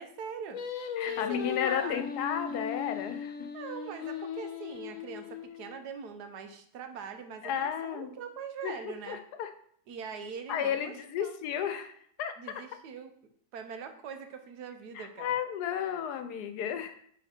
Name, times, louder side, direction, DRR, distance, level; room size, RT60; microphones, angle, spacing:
voice 1, 0.0-2.2 3.5-9.2 9.9-11.4 12.4-13.1 13.5-15.3, right 6 dB, 85° right, 8 dB, 1.3 m, -43 dB
Singing, 0.5-5.8, left 8 dB, 65° left, 1.0 m, -37 dB
voice 2, 1.0-3.5 7.4-8.1 8.6-9.5 10.5-12.6 14.9-17.0, left 8 dB, 85° left, 8 dB, 1.2 m, -33 dB
9.1 x 3.5 x 4.3 m, 0.64 s
omnidirectional pair, 1.7 m